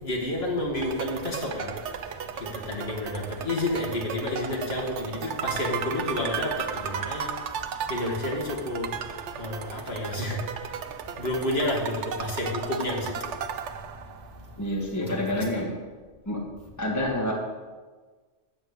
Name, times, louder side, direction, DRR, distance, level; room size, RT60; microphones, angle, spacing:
voice 1, 0.0-1.8 2.7-6.5 6.8-7.3 7.9-8.9 9.4-10.4 11.2-13.1 15.1-15.6, left 1 dB, 60° left, -1 dB, 2.0 m, -30 dB
sound 1, 0.8-14.4, right 7 dB, 75° right, 1.0 m, -35 dB
voice 2, 14.6-15.7 16.3-16.4 16.8-17.3, left 1 dB, 15° left, -2 dB, 1.8 m, -28 dB
13.5 x 4.5 x 8.1 m, 1.4 s
omnidirectional pair, 1.2 m